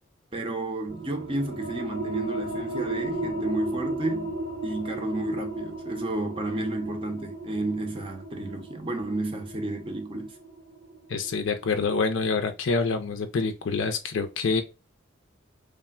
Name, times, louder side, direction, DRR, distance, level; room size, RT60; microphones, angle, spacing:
voice 1, 0.3-4.4 4.6-10.4, right 1 dB, 25° right, 0.6 m, -32 dB
sound 1, 0.9-12.1, right 2 dB, 60° right, 0.8 m, -34 dB
voice 2, 11.1-14.6, left 4 dB, 75° left, 0.4 m, -26 dB
3.3 x 2.1 x 2.2 m
head